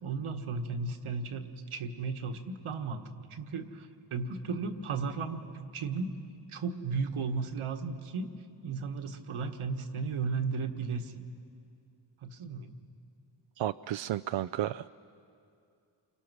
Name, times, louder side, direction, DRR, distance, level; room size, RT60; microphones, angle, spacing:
voice 1, 0.0-3.0 3.3-6.2 6.5-8.3 8.6-11.1 12.2-12.7, right 4 dB, 80° right, 6 dB, 1.6 m, -35 dB
voice 2, 13.6-14.9, right 12 dB, 65° right, 11 dB, 0.5 m, -32 dB
28.5 x 23.5 x 6.2 m, 2.5 s
cardioid pair, 65°, 49 cm